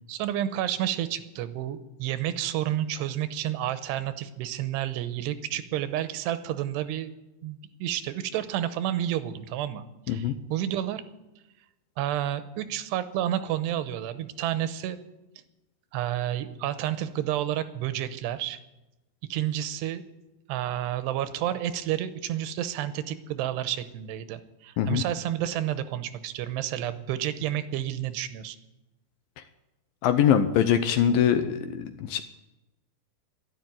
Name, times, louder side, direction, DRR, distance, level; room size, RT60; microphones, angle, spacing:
voice 1, 0.1-7.1 7.4-11.0 12.0-15.0 15.9-18.6 19.3-20.0 20.5-28.6, right 12 dB, 85° right, 11 dB, 3.0 m, -30 dB
voice 2, 30.0-32.2, left 9 dB, 75° left, 9 dB, 2.2 m, -23 dB
12.0 x 11.5 x 9.1 m, 1.0 s
omnidirectional pair, 4.7 m